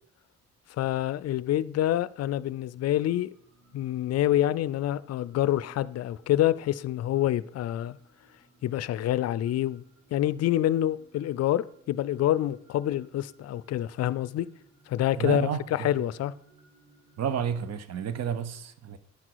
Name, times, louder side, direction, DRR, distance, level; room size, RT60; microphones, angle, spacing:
voice 1, 0.8-3.3 3.7-8.0 8.6-9.8 10.1-14.5 14.9-16.3, left 13 dB, 55° left, 0.4 m, -27 dB
sound 1, 2.9-17.6, right 2 dB, 80° right, 2.6 m, -61 dB
voice 2, 15.2-15.9 17.2-19.0, right 7 dB, 60° right, 0.8 m, -31 dB
10.0 x 6.0 x 4.6 m
cardioid pair, 90°, 30 cm